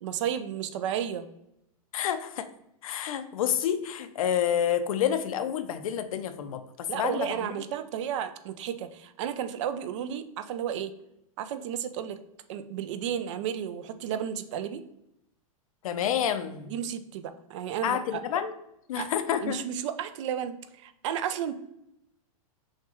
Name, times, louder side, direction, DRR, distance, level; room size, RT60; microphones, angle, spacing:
voice 1, 0.0-1.3 6.9-10.9 11.4-12.2 12.5-14.8 16.7-18.2 19.0-19.1 19.4-21.5, right 9 dB, 55° right, 11 dB, 0.4 m, -33 dB
voice 2, 1.9-2.5 2.8-7.5 15.8-16.7 17.8-18.5 18.9-19.6, left 9 dB, 70° left, 9 dB, 0.5 m, -29 dB
6.4 x 2.3 x 3.0 m, 0.82 s
hypercardioid pair, 130°, 18 cm